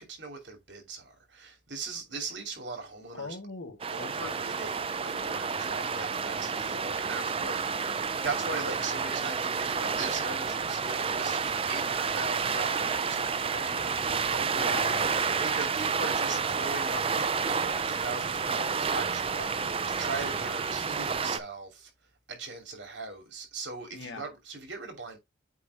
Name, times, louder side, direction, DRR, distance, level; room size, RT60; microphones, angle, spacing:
voice 1, 0.0-3.4 3.9-14.6 15.4-21.9 22.3-25.2, right 3 dB, 75° right, 2.7 m, -40 dB
voice 2, 3.1-4.4 14.5-15.1 23.9-24.2, left 3 dB, 90° left, 1.9 m, -40 dB
sound 1, 3.8-21.4, right 5 dB, 30° right, 0.5 m, -30 dB
8.3 x 3.0 x 4.8 m
head